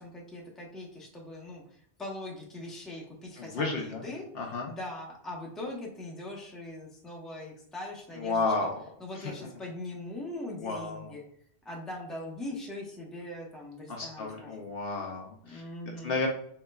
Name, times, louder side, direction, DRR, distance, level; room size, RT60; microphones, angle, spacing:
voice 1, 0.0-8.5 9.0-11.2 11.6-14.7 15.4-16.2, left 1 dB, ahead, -3 dB, 0.7 m, -41 dB
voice 2, 3.4-4.0 4.3-4.7 8.2-8.8 9.2-9.3 10.6-11.1 13.9-15.6 16.0-16.3, left 3 dB, 60° left, 0 dB, 0.8 m, -32 dB
4.6 x 3.1 x 2.2 m, 0.65 s
omnidirectional pair, 1.2 m